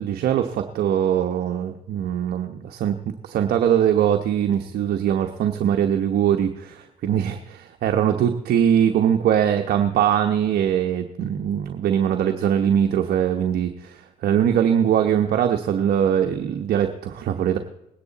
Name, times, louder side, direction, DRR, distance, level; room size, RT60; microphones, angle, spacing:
voice 1, 0.0-3.0 3.2-17.6, right 9 dB, 70° right, 5 dB, 1.1 m, -21 dB
20.0 x 9.9 x 4.1 m, 0.87 s
cardioid pair, 75°, 16 cm